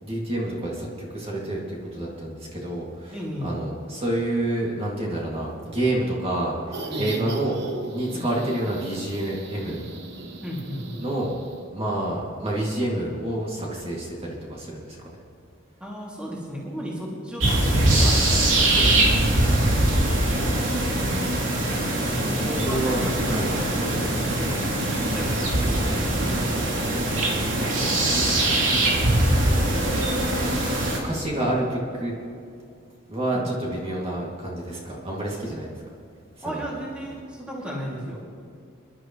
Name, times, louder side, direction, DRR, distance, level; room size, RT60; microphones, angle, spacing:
voice 1, 0.0-3.2 3.4-7.6 7.9-9.8 11.0-11.4 11.7-15.0 21.7-23.5 27.8-28.5 31.0-32.1 33.1-35.7 36.4-36.7, right 1 dB, 30° right, -4 dB, 2.4 m, -29 dB
voice 2, 3.1-3.6 6.8-7.2 8.1-8.3 10.4-10.9 15.8-18.2 18.7-19.3 22.0-23.2 23.5-24.7 25.0-26.9 33.3-33.5 36.4-38.2, equal, 5° right, -5 dB, 2.4 m, -34 dB
sound 1, 6.7-11.6, right 2 dB, 60° right, 1.2 m, -37 dB
sound 2, 17.4-31.0, right 1 dB, 90° right, 2.9 m, -22 dB
26.0 x 11.5 x 3.1 m, 2.3 s
head